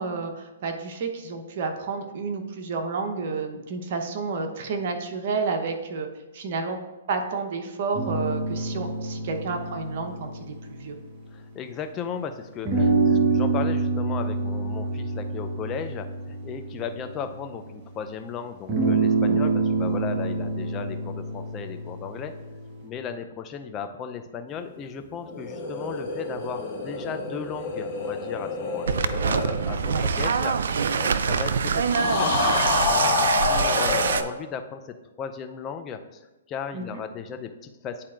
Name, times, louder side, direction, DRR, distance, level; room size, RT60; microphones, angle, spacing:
voice 1, 0.0-6.1 6.3-6.8 7.1-11.0 19.3-19.5 29.9-30.0 36.7-37.0, right 4 dB, 50° right, 4 dB, 1.0 m, -30 dB
sound 1, 7.9-11.9 12.6-17.7 18.7-22.9, right 3 dB, 30° right, 1.2 m, -27 dB
voice 2, 11.3-30.5 30.9-36.2 36.5-38.0, left 7 dB, 25° left, 6 dB, 0.5 m, -36 dB
sound 2, 25.2-30.8 31.9-34.2, left 3 dB, 45° left, 1.9 m, -28 dB
sound 3, 28.9-34.2, right 6 dB, 70° right, 0.4 m, -25 dB
10.0 x 4.2 x 2.5 m, 1.1 s
hypercardioid pair, 135°, 0 cm